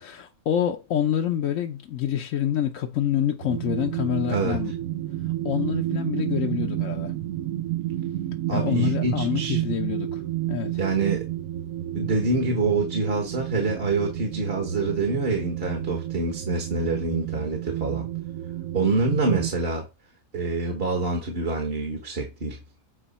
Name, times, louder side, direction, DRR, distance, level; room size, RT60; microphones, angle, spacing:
voice 1, 0.0-4.7 5.4-7.1 8.5-10.2 10.5-10.8, left 10 dB, 65° left, 1.1 m, -27 dB
sound 1, 3.4-19.5, right 14 dB, 75° right, 1.0 m, -30 dB
voice 2, 8.5-9.6 10.8-11.3 11.9-18.1 18.7-19.9 20.3-22.6, right 3 dB, 45° right, 1.5 m, -26 dB
9.0 x 4.5 x 4.2 m
omnidirectional pair, 1.5 m